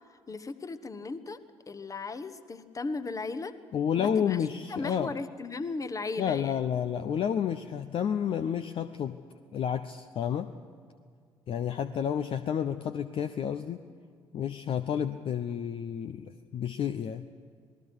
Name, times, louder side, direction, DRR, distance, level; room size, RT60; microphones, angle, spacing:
voice 1, 0.3-1.4 1.7-3.5 4.0-4.4 4.7-6.6, left 3 dB, 25° left, 12 dB, 1.4 m, -36 dB
voice 2, 3.7-5.2 6.2-9.2 9.5-10.5 11.5-13.8 14.3-17.2, left 8 dB, 45° left, 9 dB, 0.8 m, -30 dB
27.0 x 19.0 x 6.3 m, 2.1 s
figure-of-eight pair, 50°, 13 cm